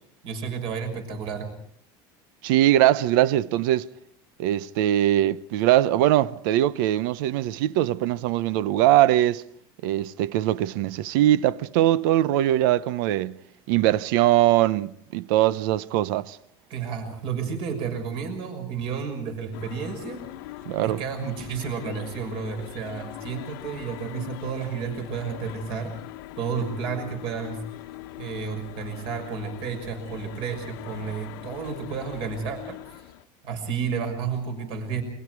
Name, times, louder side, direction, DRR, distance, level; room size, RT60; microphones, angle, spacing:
voice 1, 0.2-1.5 16.7-20.3 20.8-25.9 26.4-27.6 28.2-32.8 33.4-35.0, right 6 dB, 55° right, 6.1 m, -31 dB
voice 2, 2.4-3.9 4.4-9.4 9.8-13.4 13.7-16.4 20.7-21.0, right 13 dB, 80° right, 0.9 m, -21 dB
sound 1, 19.5-33.3, left 15 dB, 85° left, 1.3 m, -41 dB
29.5 x 24.5 x 4.8 m
cardioid pair, 160°, 11 cm